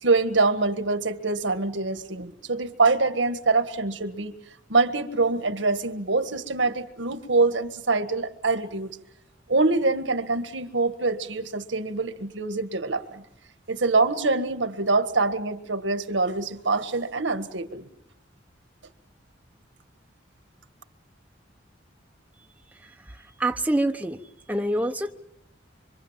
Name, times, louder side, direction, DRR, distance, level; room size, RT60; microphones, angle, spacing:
voice 1, 0.0-4.3 4.7-9.0 9.5-13.2 13.7-17.9, right 3 dB, 80° right, 10 dB, 1.7 m, -24 dB
voice 2, 22.8-24.2 24.5-25.1, right 1 dB, 10° right, 5 dB, 1.0 m, -26 dB
25.5 x 25.5 x 7.4 m, 0.76 s
head